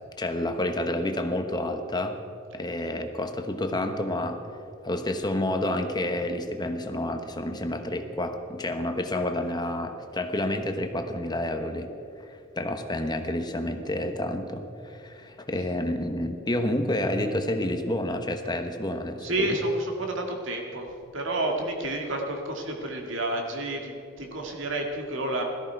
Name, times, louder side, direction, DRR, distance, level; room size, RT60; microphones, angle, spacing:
voice 1, 0.2-2.2 2.5-4.4 4.8-11.9 12.2-19.6, left 1 dB, 20° left, 6 dB, 1.0 m, -29 dB
voice 2, 19.2-25.4, right 1 dB, 65° right, 2 dB, 2.1 m, -30 dB
17.0 x 13.5 x 4.7 m, 2.5 s
head